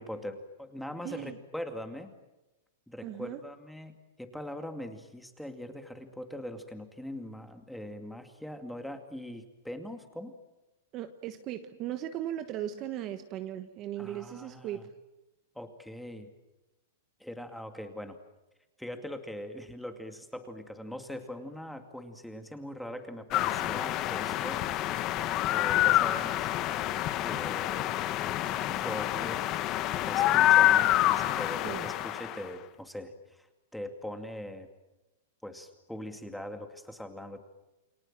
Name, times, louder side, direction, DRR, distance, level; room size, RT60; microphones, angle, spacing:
voice 1, 0.0-2.1 2.9-10.3 14.0-14.8 15.5-16.3 17.2-18.2 18.8-26.5 27.2-27.9 28.7-29.4 30.0-33.5 33.7-34.7 35.4-37.4, left 1 dB, ahead, 6 dB, 2.4 m, -41 dB
voice 2, 1.0-1.4 3.0-3.4 10.9-14.9 31.6-31.9, right 11 dB, 30° right, 9 dB, 1.3 m, -37 dB
sound 1, 23.3-32.5, left 14 dB, 30° left, 1.2 m, -27 dB
29.0 x 25.0 x 7.5 m, 1.0 s
supercardioid pair, 160°, 0 cm